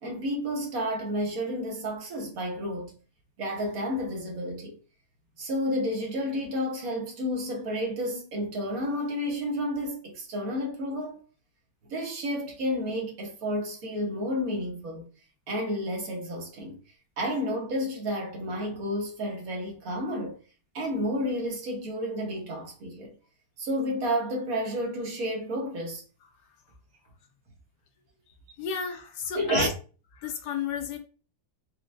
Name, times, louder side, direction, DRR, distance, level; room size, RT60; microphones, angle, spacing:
voice 1, 0.0-2.9 3.4-4.8 5.4-11.2 11.9-15.1 15.5-16.8 17.2-20.4 20.7-23.2 23.6-26.0 29.3-29.7, equal, 55° right, 1.2 m, -31 dB
voice 2, 28.6-29.7 30.2-31.0, left 7 dB, 70° left, 1.1 m, -32 dB
4.4 x 2.2 x 2.5 m
omnidirectional pair, 2.0 m